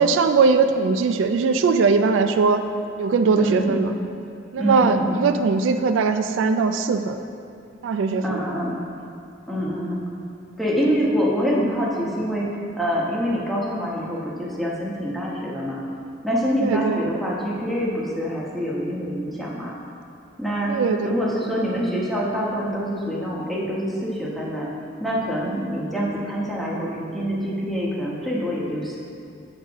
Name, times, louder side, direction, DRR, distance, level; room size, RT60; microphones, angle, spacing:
voice 1, 0.0-2.6 3.0-3.9 4.5-7.2 7.8-8.4 16.6-17.0 20.7-21.2, right 4 dB, 75° right, 8 dB, 0.3 m, -20 dB
voice 2, 3.4-3.9 4.6-5.2 8.2-8.8 9.5-10.0 10.6-12.5 12.8-15.8 16.2-19.7 20.4-20.7 21.0-24.7 25.0-29.0, equal, ahead, -6 dB, 1.1 m, -25 dB
7.8 x 5.6 x 3.5 m, 2.5 s
head